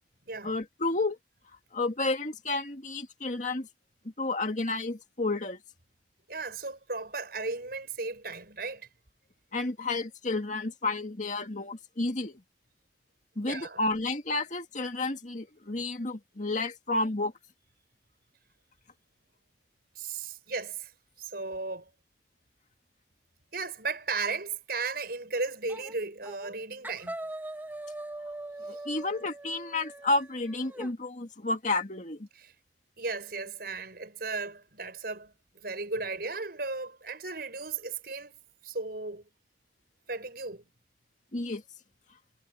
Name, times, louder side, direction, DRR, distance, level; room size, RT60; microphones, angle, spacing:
voice 1, 0.4-1.2 1.7-3.7 4.2-5.6 9.5-12.4 13.4-17.3 28.6-32.3 41.3-41.6, left 2 dB, 45° left, 2.1 m, -31 dB
voice 2, 6.3-8.9 13.4-13.8 20.0-20.9 21.2-21.9 23.5-27.2 28.7-28.8 32.3-32.5 33.0-38.4 38.6-39.2 40.1-40.6, right 3 dB, 60° right, 6.3 m, -35 dB
sound 1, 25.7-25.9 26.2-26.6 26.8-30.9, right 2 dB, 10° right, 1.6 m, -41 dB
head